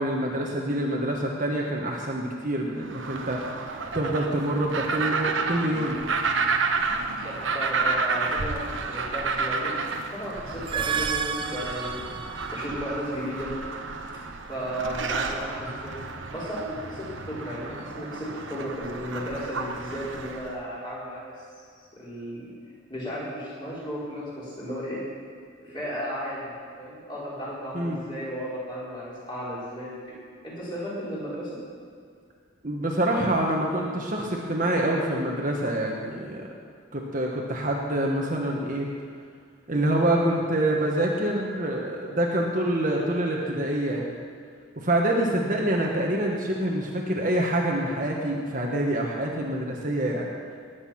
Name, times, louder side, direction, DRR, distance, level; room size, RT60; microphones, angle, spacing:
voice 1, 0.0-3.4 3.9-6.0 27.7-28.0 32.6-36.5 36.9-38.9 39.7-44.1 44.8-50.3, right 1 dB, 40° right, -1 dB, 1.4 m, -26 dB
sound 1, 2.8-20.6, right 4 dB, 65° right, 1.1 m, -31 dB
voice 2, 7.1-9.7 10.1-12.1 12.5-13.5 14.5-16.0 16.3-21.3 21.8-22.5 22.9-25.0 25.6-26.5 26.8-30.0 30.4-31.5, equal, 20° left, -8 dB, 4.6 m, -34 dB
sound 2, 10.5-12.8, right 7 dB, 25° right, 0.5 m, -31 dB
19.5 x 8.4 x 5.9 m, 2.2 s
head